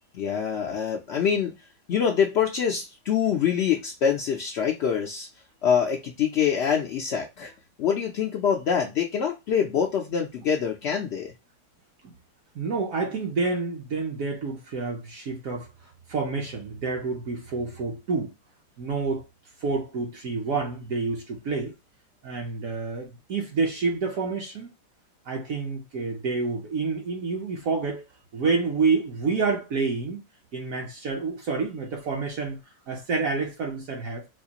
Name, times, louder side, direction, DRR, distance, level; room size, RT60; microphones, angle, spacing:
voice 1, 0.1-1.5 1.9-5.3 5.6-7.5 7.8-11.3, left 7 dB, 80° left, 0.5 m, -25 dB
voice 2, 12.5-18.3 18.8-19.2 19.6-21.7 22.2-24.7 25.3-28.0 28.3-30.2 30.5-32.6 32.9-34.3, right 4 dB, 65° right, 1.0 m, -28 dB
4.3 x 2.4 x 2.8 m
omnidirectional pair, 1.7 m